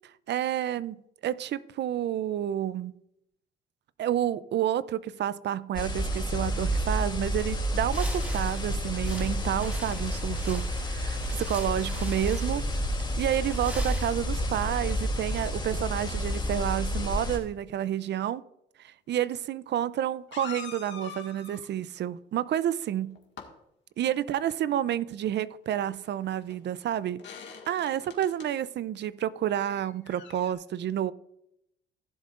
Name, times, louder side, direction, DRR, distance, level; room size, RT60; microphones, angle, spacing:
voice 1, 0.3-2.9 4.0-12.7 13.2-18.4 18.8-23.2 24.0-27.2 27.7-31.1, right 11 dB, 60° right, 0.5 m, -30 dB
sound 1, 5.7-17.4, equal, 25° left, 2.9 m, -30 dB
sound 2, 7.9-14.7, equal, 10° right, 3.7 m, -42 dB
sound 3, 19.1-19.2 20.3-21.7 23.0-23.5 26.0-26.1 26.5-26.6 27.2-28.5 29.6-30.5, left 7 dB, 65° left, 1.8 m, -44 dB
16.0 x 7.6 x 2.5 m
cardioid pair, 90°, 20 cm